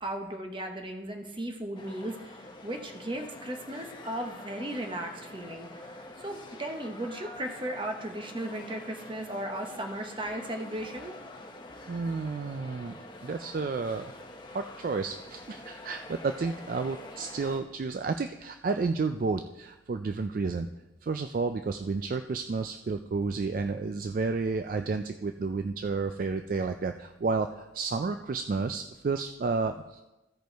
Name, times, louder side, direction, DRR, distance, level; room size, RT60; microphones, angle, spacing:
voice 1, 0.0-11.2, right 1 dB, 25° right, 4 dB, 1.0 m, -36 dB
sound 1, 1.8-17.6, left 2 dB, 25° left, 0.8 m, -46 dB
voice 2, 11.9-14.1 14.5-20.7 21.0-30.0, right 4 dB, 45° right, 7 dB, 0.3 m, -31 dB
15.0 x 5.2 x 4.5 m, 1.0 s
head